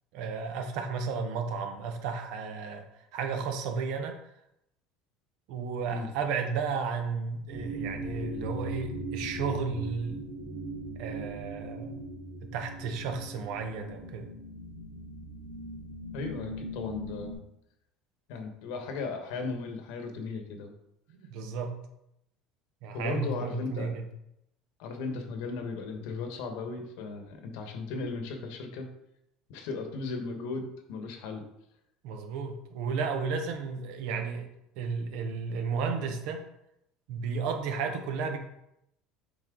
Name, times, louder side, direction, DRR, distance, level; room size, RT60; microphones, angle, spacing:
voice 1, 0.1-2.8 3.1-4.2 5.5-10.3 11.0-12.0 12.4-14.3 21.3-21.7 22.8-24.0 32.0-34.5 34.8-36.4 37.1-38.4, right 5 dB, 70° right, 5 dB, 1.1 m, -33 dB
sound 1, 7.5-17.3, right 1 dB, 50° right, 2.3 m, -39 dB
voice 2, 16.1-17.4 18.3-20.7 22.9-23.9 24.8-28.9 29.5-31.4, left 4 dB, 75° left, 5 dB, 1.3 m, -36 dB
7.4 x 4.1 x 3.9 m, 0.80 s
supercardioid pair, 120°, 0 cm